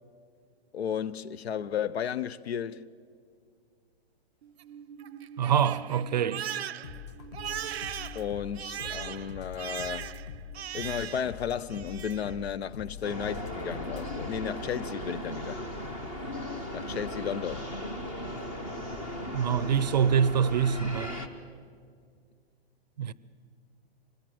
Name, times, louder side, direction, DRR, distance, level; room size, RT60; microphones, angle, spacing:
voice 1, 0.7-2.9 8.1-10.1 10.7-15.6 16.7-17.7, left 8 dB, 80° left, 0.9 m, -34 dB
Crying sobbing, 4.4-11.4 11.7-12.3, right 9 dB, 90° right, 0.7 m, -39 dB
voice 2, 5.4-6.4 19.3-21.1 23.0-23.1, right 8 dB, 45° right, 0.6 m, -25 dB
sound 1, 6.8-14.6, left 7 dB, 40° left, 1.6 m, -44 dB
sound 2, 13.0-21.3, left 1 dB, 10° left, 0.6 m, -37 dB
25.5 x 20.0 x 7.8 m
hypercardioid pair, 175°, 31 cm